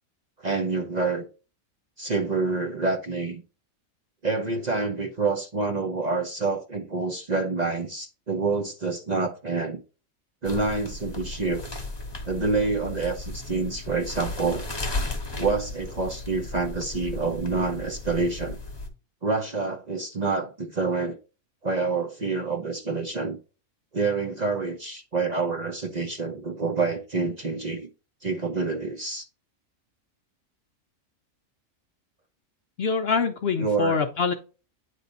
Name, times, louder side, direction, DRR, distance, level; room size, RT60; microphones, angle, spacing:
voice 1, 0.4-1.3 2.0-3.4 4.2-9.8 10.4-11.7 12.2-14.7 15.4-18.6 19.2-21.2 21.6-23.4 23.9-27.9 28.2-29.2 33.6-34.1, right 4 dB, 40° right, 0.7 m, -27 dB
sound 1, 10.4-18.9, left 2 dB, 20° left, 1.0 m, -35 dB
voice 2, 32.8-34.3, left 5 dB, 60° left, 0.7 m, -25 dB
9.2 x 3.3 x 3.9 m
omnidirectional pair, 1.4 m